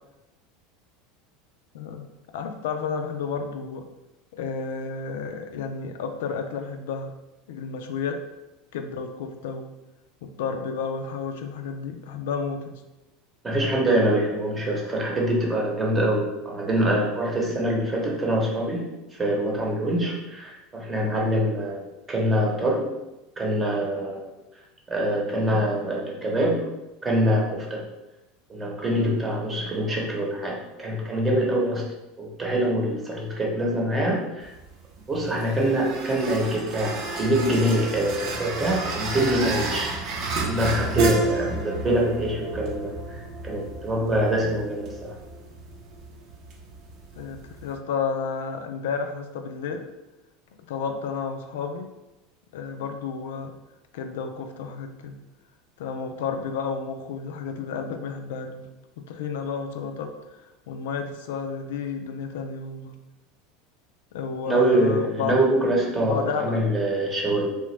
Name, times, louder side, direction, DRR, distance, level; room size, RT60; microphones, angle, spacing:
voice 1, 1.7-2.1 2.3-3.9 4.3-7.1 7.5-8.2 8.7-9.7 10.2-12.8 47.2-49.9 50.7-51.9 52.5-53.5 53.9-55.2 55.8-58.7 59.1-63.0 64.1-65.4 66.0-66.6, left 5 dB, 85° left, 5 dB, 0.3 m, -31 dB
voice 2, 13.4-22.8 23.4-24.3 24.9-26.7 27.0-27.8 28.5-31.9 32.2-34.5 35.1-39.9 40.4-45.2 64.5-67.5, right 1 dB, 20° right, -2 dB, 0.9 m, -24 dB
sound 1, 34.4-47.8, right 3 dB, 55° right, 0.7 m, -31 dB
2.9 x 2.2 x 3.2 m, 1.0 s
supercardioid pair, 115°, 0 cm